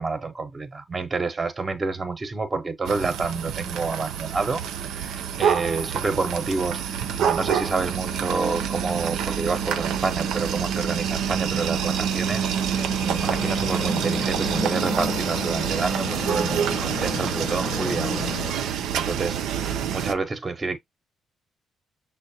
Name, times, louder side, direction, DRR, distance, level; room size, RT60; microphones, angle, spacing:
voice 1, 0.0-20.8, right 4 dB, 30° right, 0.7 m, -29 dB
sound 1, 2.9-20.1, right 8 dB, 85° right, 0.5 m, -27 dB
sound 2, 7.2-18.5, left 5 dB, 40° left, 0.7 m, -35 dB
6.2 x 2.1 x 2.6 m
cardioid pair, 90°, 0 cm